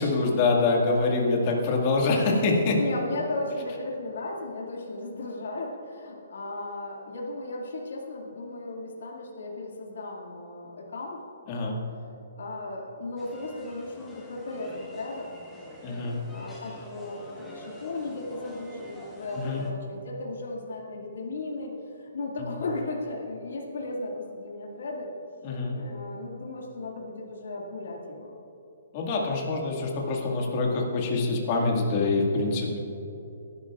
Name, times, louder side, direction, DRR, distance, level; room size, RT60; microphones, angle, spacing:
voice 1, 0.0-2.8 11.5-11.8 15.8-16.2 19.4-19.6 22.4-22.6 25.4-25.8 28.9-32.8, left 3 dB, 30° left, -1 dB, 1.9 m, -25 dB
voice 2, 2.7-11.2 12.4-15.3 16.3-21.7 22.1-25.1 25.7-28.3, left 2 dB, 75° left, -2 dB, 2.2 m, -35 dB
sound 1, 13.2-19.7, equal, 5° left, 1.3 m, -45 dB
19.5 x 11.5 x 2.4 m, 2.9 s
hypercardioid pair, 170°, 0 cm